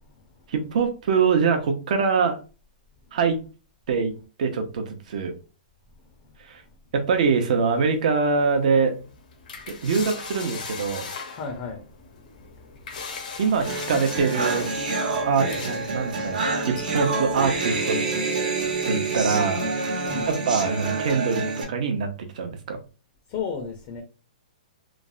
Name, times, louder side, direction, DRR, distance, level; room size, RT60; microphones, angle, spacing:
voice 1, 0.5-2.4 3.1-3.4 3.9-4.1 4.4-5.3 6.5-6.6 6.9-8.9 9.7-11.1 13.4-14.7 15.2-18.0 18.9-19.7 20.3-21.4 21.7-22.1 22.3-22.8, right 5 dB, 60° right, 0.7 m, -23 dB
sound 1, 7.1-17.6, left 5 dB, 70° left, 0.7 m, -40 dB
voice 2, 11.4-11.8 20.0-20.3 23.3-24.0, left 5 dB, 35° left, 0.5 m, -32 dB
sound 2, 13.6-14.5 16.8-17.0 18.0-18.6, right 1 dB, 20° right, 0.4 m, -42 dB
sound 3, 13.6-21.6, right 3 dB, 90° right, 1.0 m, -27 dB
3.2 x 2.0 x 2.5 m
hypercardioid pair, 150°, 5 cm